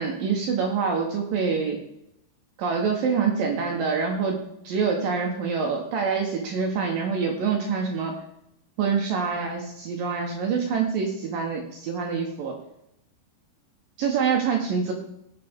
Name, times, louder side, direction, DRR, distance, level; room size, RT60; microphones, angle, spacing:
voice 1, 0.0-1.8 2.6-8.1 8.8-12.6 14.0-14.9, right 5 dB, 75° right, 1 dB, 2.1 m, -26 dB
18.5 x 7.6 x 3.5 m, 0.79 s
omnidirectional pair, 5.5 m